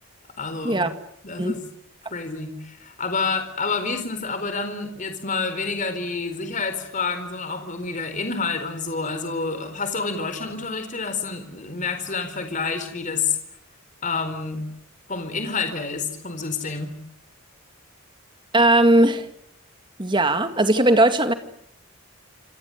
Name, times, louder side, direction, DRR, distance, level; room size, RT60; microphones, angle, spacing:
voice 1, 0.4-0.8 1.2-1.6 2.1-13.4 14.0-14.6 15.1-17.0, left 4 dB, 35° left, 4.2 m, -28 dB
voice 2, 18.5-19.3 20.0-21.3, right 1 dB, 20° right, 2.2 m, -18 dB
28.0 x 27.0 x 6.8 m
head